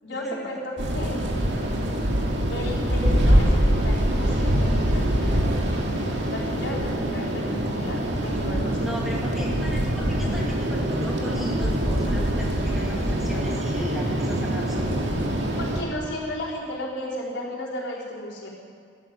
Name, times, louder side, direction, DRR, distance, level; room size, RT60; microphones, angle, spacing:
voice 1, 0.0-1.2 2.5-5.7 6.3-8.9 15.6-18.5, left 1 dB, 75° left, -5 dB, 4.1 m, -34 dB
sound 1, 0.8-15.8, equal, 75° right, 2.2 m, -24 dB
voice 2, 8.8-15.1, equal, ahead, -4 dB, 2.3 m, -37 dB
13.0 x 12.5 x 8.7 m, 2.2 s
head